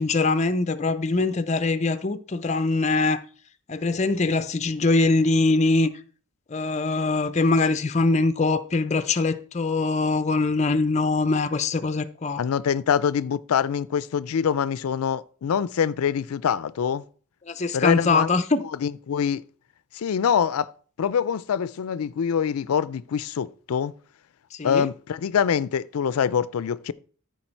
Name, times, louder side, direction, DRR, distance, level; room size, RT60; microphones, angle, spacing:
voice 1, 0.0-3.2 3.7-5.9 6.5-12.4 17.5-18.6 24.5-24.9, left 3 dB, 30° left, 0.5 m, -23 dB
voice 2, 12.4-17.0 17.7-18.3 18.8-19.4 19.9-20.7 21.0-23.9 24.6-26.9, left 7 dB, 85° left, 0.4 m, -24 dB
14.0 x 4.7 x 4.5 m
head